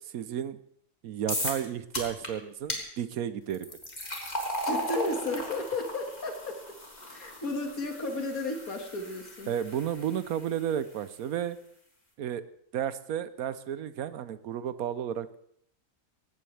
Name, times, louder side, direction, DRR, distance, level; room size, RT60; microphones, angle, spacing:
voice 1, 0.1-0.6 1.0-3.8 9.5-11.6 12.2-12.4 12.7-15.4, right 9 dB, 85° right, 13 dB, 1.2 m, -32 dB
sound 1, 1.3-1.7 1.9-2.3 2.7-2.8 3.5-10.6, equal, 30° left, 2.9 m, -36 dB
voice 2, 4.6-6.6 7.1-9.5, left 2 dB, 85° left, 3 dB, 2.4 m, -33 dB
18.5 x 16.5 x 3.4 m, 0.68 s
omnidirectional pair, 1.5 m